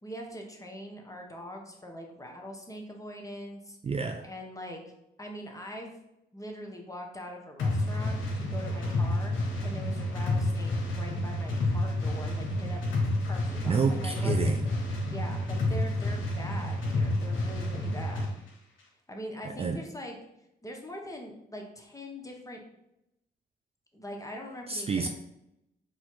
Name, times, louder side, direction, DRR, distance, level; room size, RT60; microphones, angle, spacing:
voice 1, 0.0-3.8 4.2-4.8 5.2-6.0 6.3-12.8 13.3-14.5 15.1-18.4 19.1-20.2 20.6-22.6 23.9-25.1, equal, 15° left, 1 dB, 1.2 m, -42 dB
voice 2, 3.8-4.3 13.7-14.7 19.4-19.8 24.7-25.1, right 5 dB, 30° right, 5 dB, 0.4 m, -29 dB
sound 1, 7.6-18.3, left 1 dB, 70° left, 0.9 m, -29 dB
4.3 x 2.4 x 4.5 m, 0.84 s
hypercardioid pair, 45°, 21 cm